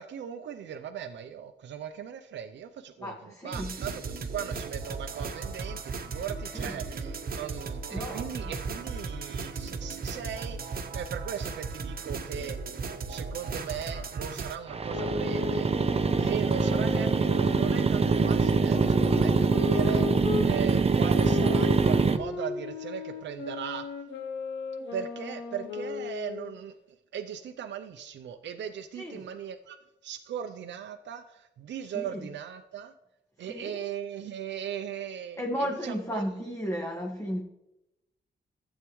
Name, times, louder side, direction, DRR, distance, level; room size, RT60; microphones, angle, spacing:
voice 1, 0.0-15.7 16.2-23.8 24.9-26.7 27.1-29.8 30.0-32.9 33.4-36.2, right 8 dB, 80° right, 6 dB, 0.6 m, -38 dB
voice 2, 3.0-3.8 6.5-6.8 7.9-8.6 28.9-29.3 31.8-32.3 33.4-33.8 35.4-37.4, equal, 15° left, 0 dB, 1.7 m, -35 dB
sound 1, 3.5-14.6, right 4 dB, 55° right, 1.1 m, -36 dB
sound 2, 14.7-22.2, right 4 dB, 35° right, 0.8 m, -24 dB
sound 3, 14.9-20.5 21.1-26.6, left 6 dB, 90° left, 1.4 m, -36 dB
12.5 x 8.1 x 3.1 m, 0.91 s
cardioid pair, 60°, 18 cm